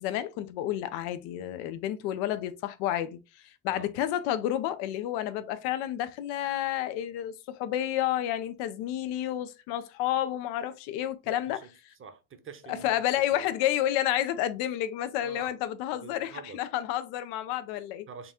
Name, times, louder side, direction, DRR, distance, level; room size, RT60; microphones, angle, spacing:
voice 1, 0.0-3.2 3.6-11.6 12.7-18.1, left 12 dB, 80° left, 0.7 m, -30 dB
voice 2, 11.2-11.7 12.0-13.0 13.3-13.5 15.2-15.5 16.0-16.6 18.1-18.3, right 5 dB, 35° right, 0.9 m, -46 dB
4.0 x 2.3 x 4.1 m
supercardioid pair, 95°, 38 cm